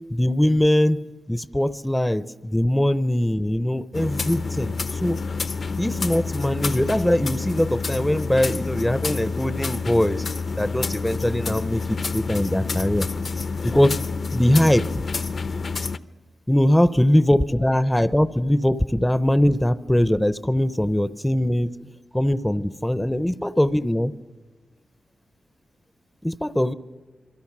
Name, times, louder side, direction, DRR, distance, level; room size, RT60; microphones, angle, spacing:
voice 1, 0.1-1.0 1.3-5.2 5.8-10.2 10.6-13.1 13.6-14.0 14.3-14.9 16.5-21.7 22.1-24.1 26.2-26.7, left 1 dB, 5° left, 15 dB, 0.6 m, -21 dB
sound 1, 3.9-16.0, left 4 dB, 50° left, 0.7 m, -28 dB
26.5 x 23.5 x 6.1 m, 1.3 s
wide cardioid pair, 100°, 0 cm